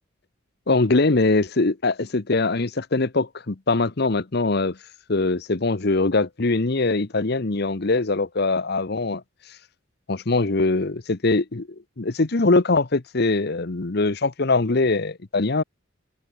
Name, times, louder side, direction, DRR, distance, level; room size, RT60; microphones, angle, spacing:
voice 1, 0.7-4.8 5.1-9.2 10.1-15.6, left 3 dB, 55° left, 0.9 m, -22 dB
head